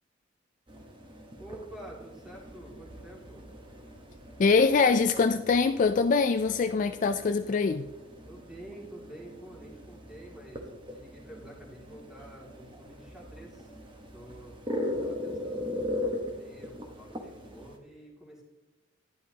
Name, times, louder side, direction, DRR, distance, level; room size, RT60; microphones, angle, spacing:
sound 1, 0.7-17.8, left 1 dB, 25° right, 1.2 m, -40 dB
voice 1, 1.4-3.5 8.2-13.7 14.1-14.7 15.0-18.4, right 1 dB, ahead, 2.3 m, -48 dB
voice 2, 4.4-7.9, left 4 dB, 40° left, 0.3 m, -23 dB
11.5 x 11.0 x 2.9 m
head